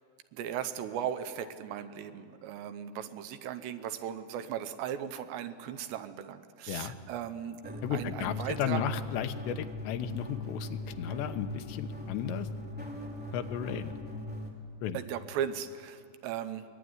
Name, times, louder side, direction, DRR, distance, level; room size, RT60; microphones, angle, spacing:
voice 1, 0.3-8.8 14.9-16.6, right 9 dB, 80° right, 10 dB, 3.1 m, -37 dB
sound 1, 7.6-14.5, left 2 dB, 5° right, 2.3 m, -40 dB
voice 2, 7.8-12.5 13.3-13.9 14.8-15.0, left 9 dB, 80° left, 8 dB, 3.1 m, -34 dB
23.0 x 21.0 x 9.6 m, 2.2 s
omnidirectional pair, 5.2 m